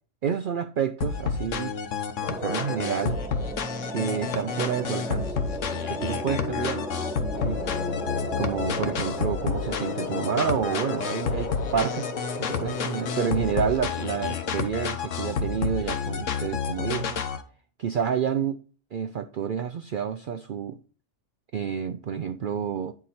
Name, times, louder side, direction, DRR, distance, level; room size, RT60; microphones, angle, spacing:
voice 1, 0.2-1.7 2.3-3.2 3.9-5.4 5.7-6.9 7.4-7.6 8.4-12.1 12.4-17.2 17.8-18.6 18.9-20.8 21.5-22.9, right 7 dB, 65° right, 9 dB, 0.5 m, -29 dB
sound 1, 1.0-17.4, left 6 dB, 70° left, 1.2 m, -30 dB
sound 2, 2.2-9.3, equal, 5° right, 0.4 m, -35 dB
sound 3, 7.3-14.6, left 4 dB, 40° left, 0.7 m, -36 dB
9.2 x 4.7 x 4.2 m, 0.39 s
omnidirectional pair, 1.4 m